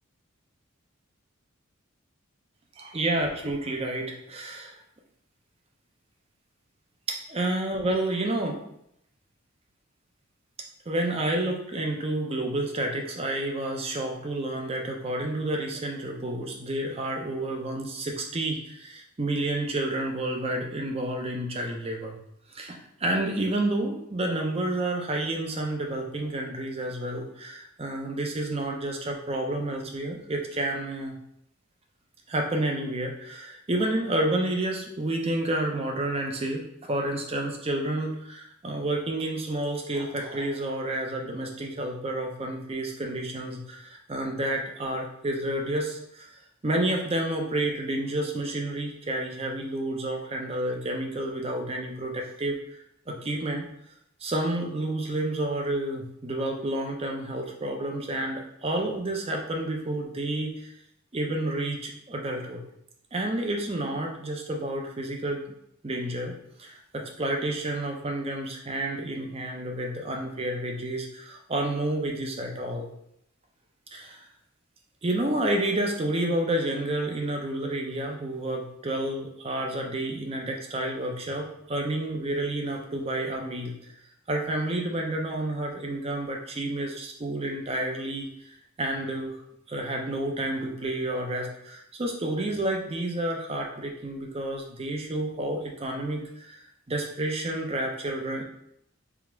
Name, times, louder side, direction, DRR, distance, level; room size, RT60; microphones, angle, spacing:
voice 1, 2.8-4.8 7.1-8.6 10.9-22.2 22.5-31.2 32.3-46.4 46.6-53.7 54.2-60.7 61.1-62.6 63.1-65.4 65.8-72.9 73.9-74.3 75.0-83.8 84.3-89.4 89.7-96.6 96.9-98.4, right 1 dB, 30° right, 1 dB, 0.6 m, -30 dB
3.7 x 2.4 x 4.4 m, 0.75 s
head